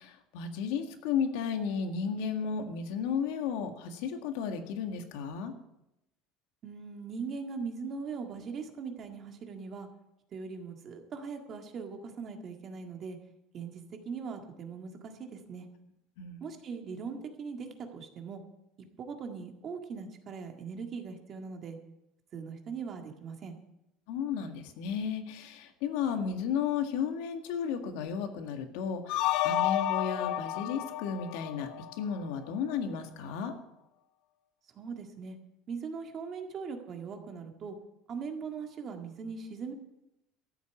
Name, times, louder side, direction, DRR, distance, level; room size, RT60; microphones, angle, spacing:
voice 1, 0.0-5.5 16.2-16.5 24.1-31.7 32.0-33.5, left 7 dB, 80° left, 6 dB, 1.8 m, -33 dB
voice 2, 6.6-9.9 10.3-13.2 13.5-15.7 16.4-18.4 19.0-21.8 22.3-23.6 34.7-35.4 35.7-37.8 38.1-39.7, right 5 dB, 35° right, 4 dB, 1.8 m, -40 dB
sound 1, 29.1-32.2, left 13 dB, 60° left, 0.7 m, -31 dB
13.5 x 8.3 x 8.3 m, 0.87 s
cardioid pair, 160°, 0 cm